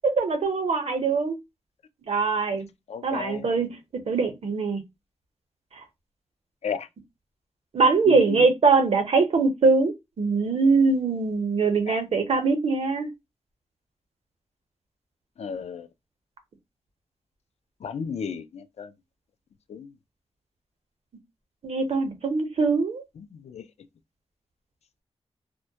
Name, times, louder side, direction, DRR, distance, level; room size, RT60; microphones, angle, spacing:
voice 1, 0.0-1.4 2.1-2.7 3.0-4.8 7.7-13.1 21.6-23.0, right 4 dB, 65° right, 0.7 m, -22 dB
voice 2, 2.9-3.5 6.6-6.9 8.1-8.5 11.9-12.0 15.4-15.9 17.8-18.9 19.7-19.9 23.2-23.7, left 6 dB, 75° left, 0.4 m, -33 dB
2.1 x 2.1 x 2.7 m
wide cardioid pair, 150°, 11 cm